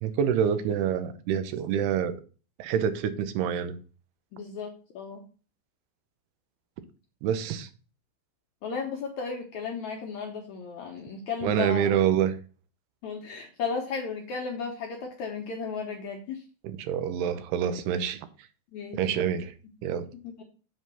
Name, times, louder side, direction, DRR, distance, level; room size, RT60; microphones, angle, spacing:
voice 1, 0.0-2.2 2.6-3.7 7.2-7.7 11.4-12.4 16.6-18.2 18.9-19.5 19.8-20.1, right 8 dB, 85° right, 2.9 m, -26 dB
voice 2, 4.3-5.2 8.6-11.9 13.0-16.4 18.7-19.3 20.2-20.4, left 5 dB, 70° left, 1.8 m, -35 dB
7.9 x 3.9 x 6.7 m
omnidirectional pair, 4.6 m